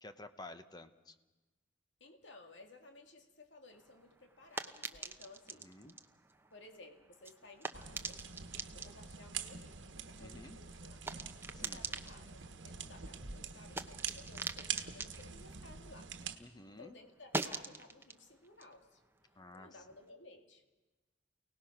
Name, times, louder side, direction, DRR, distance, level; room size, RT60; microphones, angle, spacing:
voice 1, 0.0-1.1 5.6-5.9 10.2-10.6 11.5-11.8 16.4-17.0 19.4-19.8, left 2 dB, 20° left, 9 dB, 1.1 m, -52 dB
voice 2, 2.0-5.7 6.5-8.2 8.7-11.2 11.6-16.1 16.7-19.0 19.5-20.6, left 2 dB, 75° left, 4 dB, 2.3 m, -57 dB
sound 1, 3.7-16.5 16.8-20.0, right 3 dB, 10° right, 0.9 m, -46 dB
sound 2, 7.7-16.4, right 7 dB, 75° right, 1.3 m, -45 dB
28.5 x 18.5 x 6.0 m, 1.1 s
head